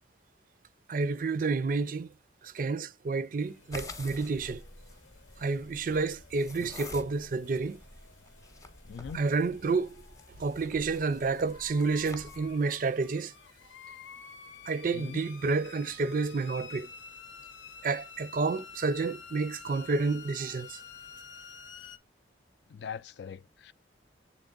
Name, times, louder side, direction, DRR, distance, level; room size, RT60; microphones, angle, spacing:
voice 1, 0.9-2.1 2.4-4.6 5.4-7.8 9.1-10.0 10.4-13.3 14.7-16.9 17.8-20.8, right 4 dB, 45° right, 0.4 m, -30 dB
sound 1, 3.4-22.0, left 6 dB, 80° left, 0.7 m, -51 dB
sound 2, 3.7-12.5, left 2 dB, 15° left, 0.7 m, -48 dB
voice 2, 8.9-9.2 15.1-15.2 22.7-23.7, left 7 dB, 65° left, 0.3 m, -41 dB
7.2 x 3.5 x 3.7 m
head